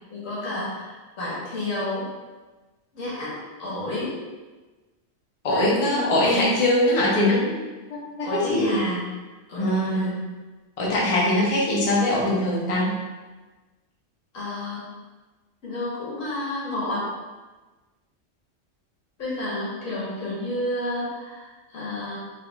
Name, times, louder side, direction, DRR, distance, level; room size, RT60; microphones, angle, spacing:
voice 1, 0.1-2.1 2.9-4.2 5.5-6.6 8.2-9.0 9.5-10.2 14.3-14.9 15.6-17.1 19.2-22.2, left 1 dB, 85° left, -7 dB, 1.7 m, -31 dB
voice 2, 5.4-7.5 7.9-8.0 8.3-8.8 9.6-10.1 10.8-12.9, left 1 dB, 35° left, -4 dB, 0.7 m, -21 dB
4.3 x 3.5 x 2.3 m, 1.2 s
omnidirectional pair, 1.3 m